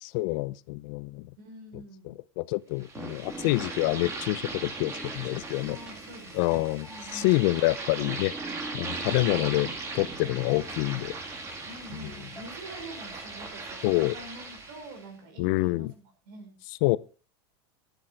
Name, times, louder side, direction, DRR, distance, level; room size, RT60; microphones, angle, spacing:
voice 1, 0.0-1.3 1.7-5.8 6.3-6.9 7.1-8.3 8.7-9.7 9.9-11.1 12.0-12.1 13.8-14.1 15.4-15.9 16.8-17.0, left 21 dB, 55° left, 0.5 m, -27 dB
voice 2, 1.4-2.2 3.3-3.6 5.6-7.6 9.1-9.6 11.7-13.9 14.1-16.6, right 2 dB, 70° right, 5.1 m, -46 dB
sound 1, 2.8-15.0, right 3 dB, 20° right, 2.1 m, -39 dB
sound 2, 2.9-13.8, right 2 dB, 5° right, 1.8 m, -44 dB
10.0 x 10.0 x 4.6 m
supercardioid pair, 165°, 12 cm